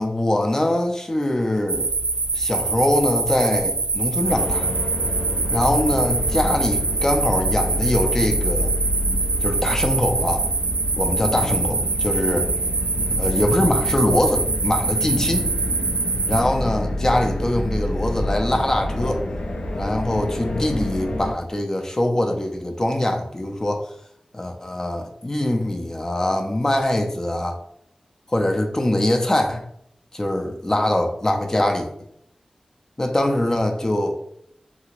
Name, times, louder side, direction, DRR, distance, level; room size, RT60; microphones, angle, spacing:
voice 1, 0.0-1.9 2.3-4.7 5.5-8.7 9.4-10.4 11.0-12.5 13.2-15.4 16.3-19.2 19.7-23.9 24.3-27.6 28.3-29.6 30.1-31.9 33.0-34.2, left 1 dB, 25° left, 3 dB, 0.4 m, -23 dB
sound 1, 1.7-16.4, right 3 dB, 80° right, 0.4 m, -24 dB
sound 2, 4.3-21.3, left 1 dB, 85° left, 0.4 m, -28 dB
2.7 x 2.4 x 3.0 m, 0.73 s
wide cardioid pair, 85°, 2 cm